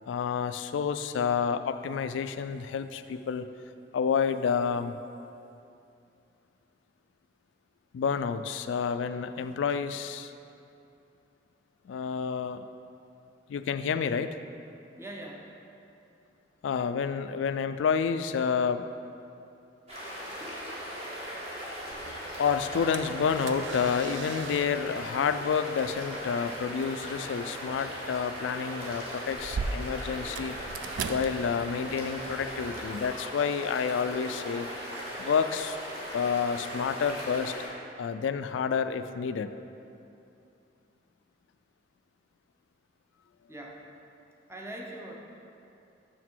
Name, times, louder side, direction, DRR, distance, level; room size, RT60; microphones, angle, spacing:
voice 1, 0.1-3.5 3.9-5.0 7.9-10.3 11.9-12.7 13.5-14.3 16.6-18.8 22.4-30.5 31.1-34.7 35.2-35.8 36.1-37.7 38.0-39.5, left 6 dB, 80° left, 11 dB, 0.3 m, -29 dB
voice 2, 15.0-15.5 43.5-43.9 44.5-45.1, right 1 dB, 15° right, -1 dB, 0.7 m, -42 dB
sound 1, 19.9-37.7, equal, 35° right, 1.6 m, -38 dB
sound 2, 21.9-33.0, right 4 dB, 75° right, 0.4 m, -41 dB
6.5 x 6.0 x 4.5 m, 2.7 s
head